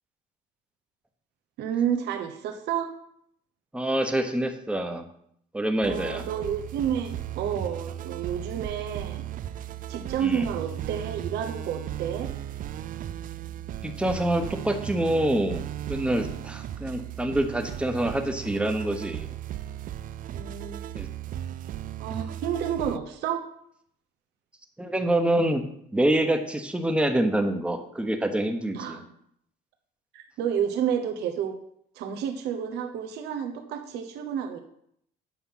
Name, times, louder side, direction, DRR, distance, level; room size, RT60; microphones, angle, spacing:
voice 1, 1.6-2.9 5.8-9.3 9.9-12.3 20.3-20.9 21.3-21.4 22.0-23.4 28.7-29.0 30.1-31.5 31.9-34.6, right 8 dB, 80° right, 5 dB, 1.1 m, -30 dB
voice 2, 3.7-5.1 5.5-6.2 10.2-10.5 13.8-19.3 20.9-21.1 24.8-25.6 25.9-29.0, right 1 dB, 5° right, 5 dB, 1.1 m, -26 dB
sound 1, 5.8-23.0, right 11 dB, 55° right, 0.4 m, -36 dB
8.3 x 5.6 x 5.7 m, 0.71 s
cardioid pair, 110°, 17 cm